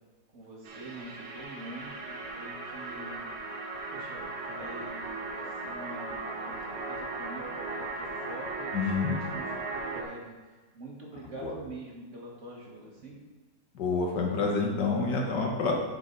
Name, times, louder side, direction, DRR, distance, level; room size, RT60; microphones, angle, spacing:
voice 1, 0.3-3.2 3.9-13.2, right 2 dB, 45° right, -3 dB, 1.9 m, -45 dB
sound 1, 0.7-10.0, right 3 dB, 80° right, 1.7 m, -37 dB
voice 2, 8.7-9.1 11.4-11.5 13.7-15.7, left 4 dB, 80° left, 0 dB, 1.9 m, -28 dB
7.9 x 6.6 x 4.0 m, 1.2 s
omnidirectional pair, 1.8 m